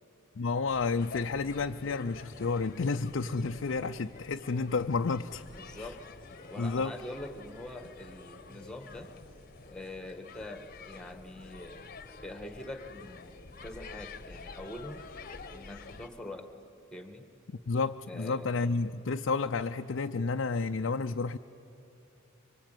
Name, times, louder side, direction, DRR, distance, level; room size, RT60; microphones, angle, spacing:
voice 1, 0.4-5.4 5.8-5.9 6.6-6.9 17.5-21.4, left 4 dB, 60° left, 5 dB, 0.5 m, -31 dB
sound 1, 0.7-16.1, left 4 dB, 45° left, 1.0 m, -48 dB
voice 2, 5.6-6.0 6.5-9.1 9.6-11.8 12.2-15.1 15.5-16.5 16.9-17.2 18.1-18.7, left 1 dB, 5° left, 7 dB, 1.6 m, -44 dB
24.5 x 24.5 x 9.2 m, 2.9 s
head